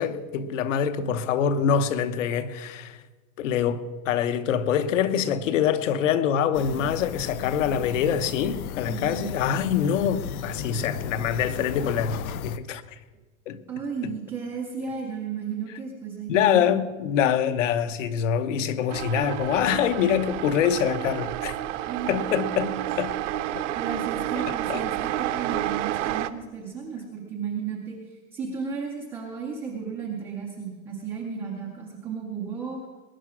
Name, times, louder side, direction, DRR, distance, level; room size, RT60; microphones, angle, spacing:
voice 1, 0.0-3.0 3.4-12.8 13.5-13.6 14.0-14.1 16.3-21.6 22.1-22.7 23.0-23.1 23.5-23.7 24.7-24.8, left 8 dB, 65° left, 1.1 m, -25 dB
sound 1, 6.5-12.6, left 8 dB, 90° left, 0.9 m, -35 dB
voice 2, 8.9-9.4 10.6-10.9 13.7-16.8 21.9-22.1 22.5-22.9 23.8-28.0 28.3-32.8, right 6 dB, 5° right, 0.4 m, -34 dB
sound 2, 18.9-26.3, right 13 dB, 60° right, 0.8 m, -30 dB
20.5 x 10.5 x 6.1 m
supercardioid pair, 180°, 41 cm